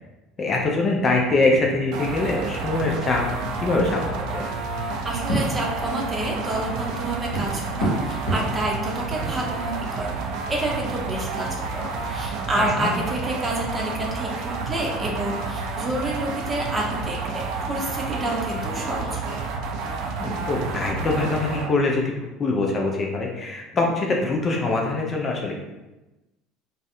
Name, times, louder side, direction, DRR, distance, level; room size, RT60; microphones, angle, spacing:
voice 1, 0.4-3.2 3.6-4.5 12.5-12.9 20.2-22.1 22.4-25.5, left 2 dB, 35° left, 0 dB, 0.4 m, -23 dB
sound 1, 1.9-21.7, right 4 dB, 60° right, 0.3 m, -30 dB
sound 2, 4.9-12.5, right 1 dB, 75° left, 0.8 m, -33 dB
voice 2, 5.0-10.1 10.5-19.4, right 1 dB, 25° right, -2 dB, 0.6 m, -29 dB
2.5 x 2.0 x 2.4 m, 1.0 s
hypercardioid pair, 65°, 0 cm